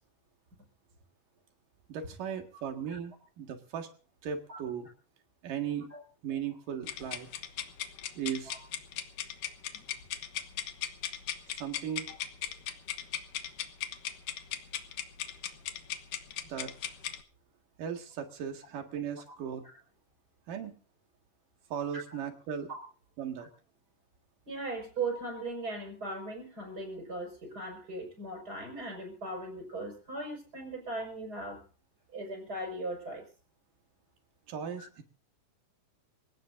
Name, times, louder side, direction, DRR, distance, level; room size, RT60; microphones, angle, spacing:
voice 1, 1.9-3.9 4.2-4.9 5.4-5.9 6.2-7.3 8.2-8.6 11.5-12.1 16.5-16.7 17.8-19.7 20.5-20.8 21.7-22.7 23.2-23.5 34.5-35.0, right 8 dB, 90° right, 4 dB, 3.6 m, -37 dB
sound 1, 6.8-17.2, left 11 dB, 80° left, 2.8 m, -38 dB
voice 2, 24.5-31.6 32.1-33.3 34.8-34.9, right 2 dB, 30° right, 3 dB, 6.3 m, -38 dB
26.0 x 17.0 x 2.7 m, 0.37 s
omnidirectional pair, 3.7 m